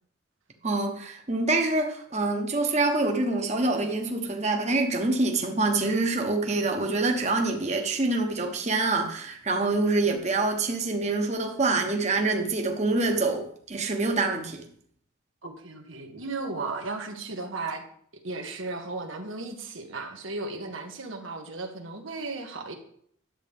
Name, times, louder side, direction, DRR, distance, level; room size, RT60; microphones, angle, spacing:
voice 1, 0.6-14.6, right 3 dB, 35° right, 3 dB, 1.2 m, -26 dB
voice 2, 15.4-17.8 18.2-22.7, right 3 dB, 80° right, 4 dB, 1.5 m, -35 dB
11.0 x 8.1 x 3.6 m, 0.63 s
head